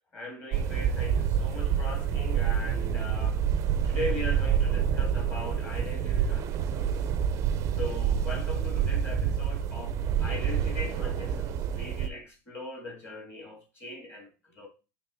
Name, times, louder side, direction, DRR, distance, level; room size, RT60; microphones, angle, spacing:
voice 1, 0.1-3.4 3.8-6.9 7.8-14.3 14.6-14.7, left 2 dB, 20° left, 2.0 m, -39 dB
sound 1, 0.5-12.1, right 8 dB, 30° right, 0.5 m, -27 dB
5.8 x 3.4 x 5.6 m
supercardioid pair, 160°, 10 cm